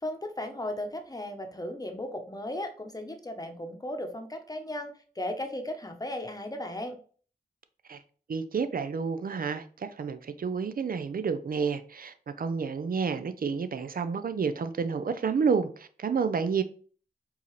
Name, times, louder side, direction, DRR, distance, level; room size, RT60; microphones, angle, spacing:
voice 1, 0.0-6.9, left 1 dB, 20° left, 0.9 m, -36 dB
voice 2, 8.3-16.6, right 5 dB, 60° right, 0.5 m, -30 dB
4.6 x 2.8 x 3.2 m
cardioid pair, 50°, 17 cm